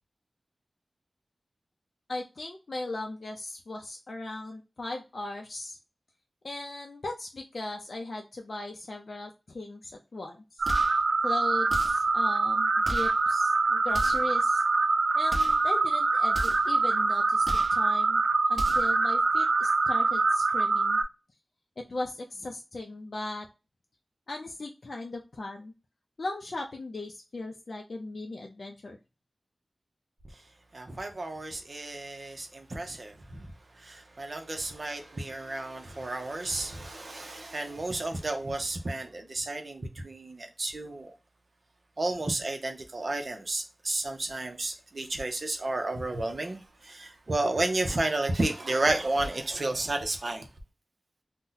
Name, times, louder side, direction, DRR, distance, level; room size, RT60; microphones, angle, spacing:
voice 1, 2.1-5.8 6.4-10.7 11.2-14.6 15.1-18.2 18.5-21.0 21.8-23.5 24.3-25.7 26.2-29.0, left 2 dB, 65° left, 0.4 m, -38 dB
sound 1, 10.6-11.0 11.7-12.1 12.8-13.2 13.9-14.3 15.3-15.7 16.3-16.7 17.4-17.8 18.5-19.0, equal, 25° right, 1.0 m, -36 dB
sound 2, 10.6-21.0, right 3 dB, 85° right, 0.4 m, -25 dB
voice 2, 30.7-33.5 33.8-41.1 42.0-50.5, right 2 dB, 55° right, 0.7 m, -32 dB
2.7 x 2.1 x 3.8 m
wide cardioid pair, 90°, 0 cm